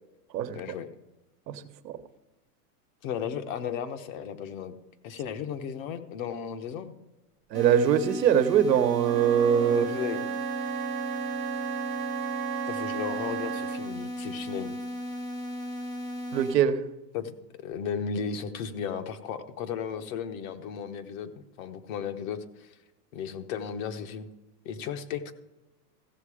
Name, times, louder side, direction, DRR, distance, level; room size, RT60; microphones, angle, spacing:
voice 1, 0.5-0.9 3.0-4.7 5.0-6.9 9.7-10.2 12.7-14.8 17.1-17.3 17.6-21.3 21.6-22.7 23.1-24.3 24.6-25.3, left 7 dB, 55° left, 9 dB, 1.2 m, -35 dB
voice 2, 1.5-2.0 7.5-9.8 16.3-16.8, right 9 dB, 90° right, 9 dB, 1.1 m, -23 dB
sound 1, 7.5-16.5, left 1 dB, 10° left, 0.5 m, -36 dB
Wind instrument woodwind instrument, 9.0-14.0, right 11 dB, 35° right, 0.8 m, -34 dB
15.0 x 6.7 x 4.9 m, 1.1 s
supercardioid pair, 140°, 48 cm